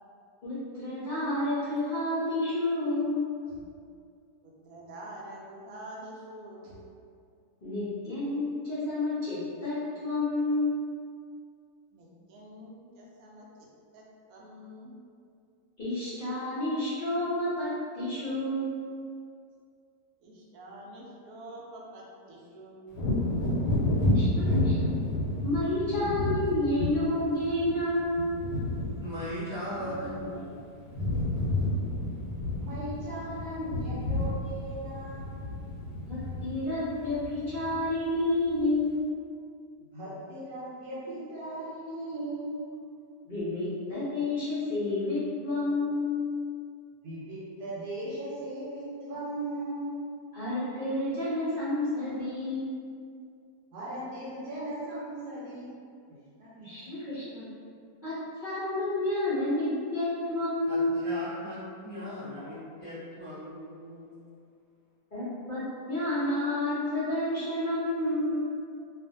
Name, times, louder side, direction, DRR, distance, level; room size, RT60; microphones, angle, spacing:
voice 1, 0.4-3.2 7.6-10.8 15.8-17.7 17.9-18.8 24.1-24.9 25.4-28.3 36.0-39.0 43.2-46.3 50.3-52.7 56.6-57.5 58.0-58.1 58.4-61.1 65.1-68.4, left 2 dB, 50° left, -13 dB, 0.5 m, -30 dB
voice 2, 4.4-6.8 11.9-13.5 13.9-15.0 20.2-22.8, right 1 dB, 70° right, -3 dB, 0.9 m, -46 dB
Wind / Thunder, 22.9-30.5 30.8-38.0 38.4-38.6, left 1 dB, 90° left, 1.2 m, -30 dB
voice 3, 29.0-30.5 60.7-64.1, equal, 35° right, -14 dB, 1.0 m, -39 dB
voice 4, 32.6-35.4 39.9-42.6 47.0-50.0 53.7-55.8 56.4-57.0, right 1 dB, 85° right, -9 dB, 1.2 m, -38 dB
2.5 x 2.4 x 2.6 m, 2.3 s
omnidirectional pair, 1.7 m